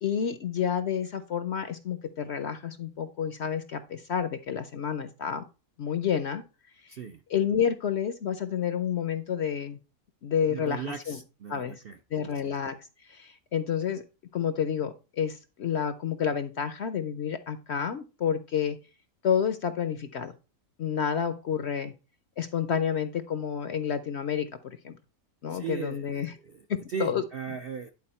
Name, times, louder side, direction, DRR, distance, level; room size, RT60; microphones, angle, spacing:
voice 1, 0.0-5.4 5.8-6.4 7.3-9.8 10.2-11.2 11.5-11.8 12.1-12.8 13.0-14.0 14.3-18.8 19.2-20.3 20.8-21.9 22.4-25.0 25.4-26.3 26.7-27.2, left 8 dB, 60° left, 11 dB, 0.8 m, -29 dB
voice 2, 6.9-7.2 10.5-12.3 25.5-26.6 26.9-27.9, right 6 dB, 60° right, 6 dB, 0.6 m, -37 dB
11.0 x 4.2 x 4.2 m, 0.31 s
omnidirectional pair, 1.6 m